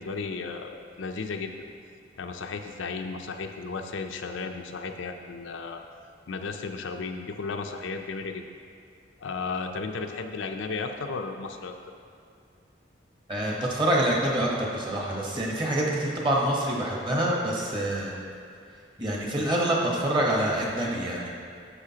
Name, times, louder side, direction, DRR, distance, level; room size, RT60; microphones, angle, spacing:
voice 1, 0.0-1.5 2.2-5.8 6.3-8.4 9.2-11.7, left 4 dB, 80° left, 5 dB, 0.5 m, -34 dB
voice 2, 13.3-18.2 19.0-21.3, right 1 dB, 25° right, -3 dB, 1.1 m, -26 dB
9.8 x 6.6 x 2.8 m, 2.4 s
head